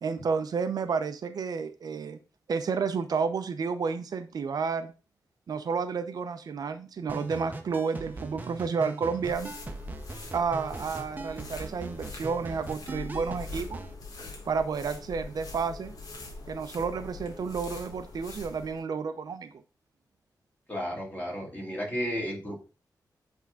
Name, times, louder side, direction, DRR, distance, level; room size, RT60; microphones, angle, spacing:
voice 1, 0.0-2.2 2.5-4.9 5.5-9.5 10.3-13.8 14.5-15.9 16.5-19.5, right 5 dB, 65° right, 8 dB, 0.6 m, -31 dB
sound 1, 7.1-13.9, right 2 dB, 25° right, 0.7 m, -41 dB
sound 2, 9.2-18.8, left 3 dB, 60° left, 1.4 m, -43 dB
voice 2, 20.7-22.6, equal, 25° left, -2 dB, 2.4 m, -33 dB
8.4 x 3.6 x 3.8 m, 0.33 s
wide cardioid pair, 135°, 7 cm